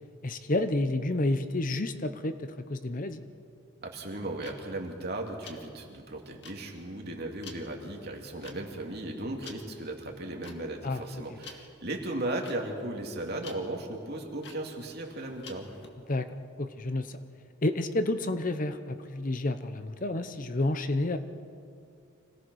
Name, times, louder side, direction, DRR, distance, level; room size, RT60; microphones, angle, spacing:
voice 1, 0.2-3.2 10.8-11.2 16.1-16.3 16.6-17.2 17.6-21.2, left 2 dB, 40° left, 10 dB, 0.8 m, -30 dB
voice 2, 3.8-15.7, right 1 dB, 50° right, 1 dB, 2.6 m, -36 dB
sound 1, 4.1-15.9, left 5 dB, 55° left, 2.1 m, -51 dB
26.0 x 17.5 x 6.4 m, 2.4 s
head